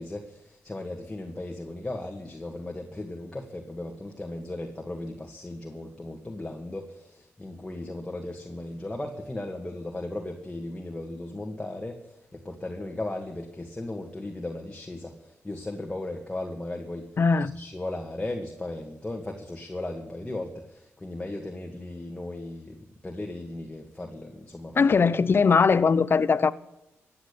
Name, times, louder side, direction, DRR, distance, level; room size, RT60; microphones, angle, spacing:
voice 1, 0.0-17.1 17.5-25.0, left 2 dB, 15° left, 2.0 m, -36 dB
voice 2, 17.2-17.5 24.8-26.5, left 5 dB, 45° left, 0.7 m, -20 dB
15.5 x 8.9 x 8.4 m
cardioid pair, 75°, 5 cm